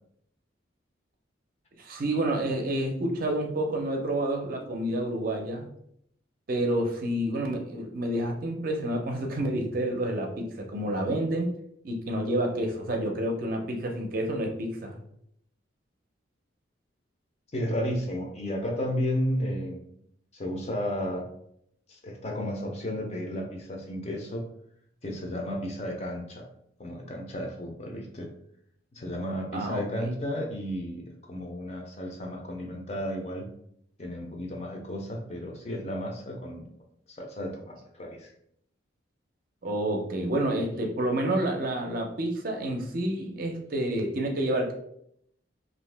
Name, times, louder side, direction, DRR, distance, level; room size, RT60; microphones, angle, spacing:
voice 1, 1.8-5.7 6.5-11.5 11.8-15.0 29.5-30.1 39.6-44.7, right 1 dB, 45° right, 2 dB, 0.5 m, -29 dB
voice 2, 17.5-19.9 20.3-21.3 21.9-24.5 25.0-26.5 26.8-28.3 28.9-33.5 34.0-36.7 37.1-38.3, equal, 35° left, 1 dB, 0.5 m, -33 dB
2.8 x 2.5 x 3.3 m, 0.71 s
head